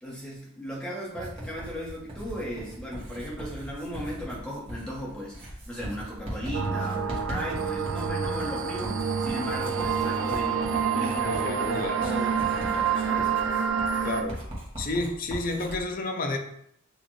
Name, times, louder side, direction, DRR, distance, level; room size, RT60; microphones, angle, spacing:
voice 1, 0.0-13.3, equal, 5° left, -5 dB, 1.1 m, -36 dB
Writing, 1.2-15.8, equal, 25° right, 1.2 m, -40 dB
sound 1, 6.5-14.2, right 6 dB, 60° right, 0.4 m, -28 dB
voice 2, 11.2-12.2 14.0-14.4 14.8-16.4, left 2 dB, 40° left, 4 dB, 0.5 m, -30 dB
6.4 x 2.5 x 3.1 m, 0.73 s
head